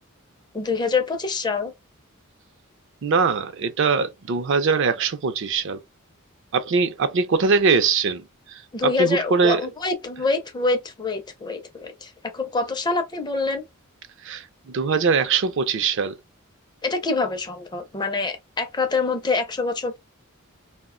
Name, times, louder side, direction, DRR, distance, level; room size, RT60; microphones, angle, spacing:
voice 1, 0.5-1.7 8.7-13.6 16.8-20.0, left 3 dB, 20° left, 0.4 m, -25 dB
voice 2, 3.0-5.8 6.5-9.6 14.2-16.1, right 5 dB, 60° right, 0.4 m, -22 dB
2.4 x 2.1 x 3.6 m
head